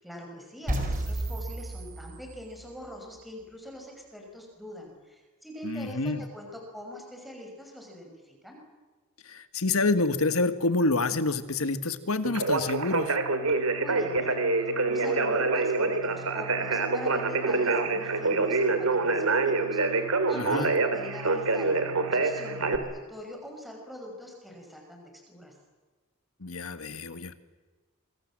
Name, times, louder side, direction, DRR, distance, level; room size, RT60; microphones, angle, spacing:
voice 1, 0.0-8.6 13.5-14.4 14.8-25.0 25.3-25.5, equal, ahead, 1 dB, 6.0 m, -43 dB
sound 1, 0.7-2.7, right 1 dB, 40° right, 5.2 m, -32 dB
voice 2, 5.6-6.2 9.3-13.2 20.3-20.7 26.4-27.3, left 3 dB, 75° left, 10 dB, 1.7 m, -27 dB
Conversation, 12.2-22.8, right 3 dB, 80° right, 2.8 m, -26 dB
27.5 x 25.5 x 7.6 m, 1.3 s
head